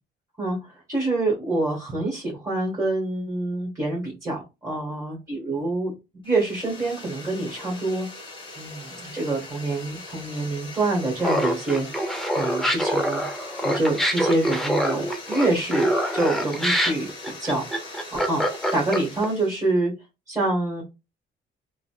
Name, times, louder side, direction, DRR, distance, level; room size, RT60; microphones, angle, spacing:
voice 1, 0.4-5.9 6.2-8.1 8.6-11.9 12.3-13.2 13.6-15.8 16.1-18.4 18.7-19.9 20.3-20.8, right 2 dB, 15° right, -4 dB, 1.7 m, -26 dB
sound 1, 6.2-19.7, left 2 dB, 25° left, 1.3 m, -41 dB
Laughter, 11.2-19.3, equal, ahead, 0.8 m, -25 dB
3.9 x 2.2 x 2.4 m, 0.26 s
cardioid pair, 90°, 20 cm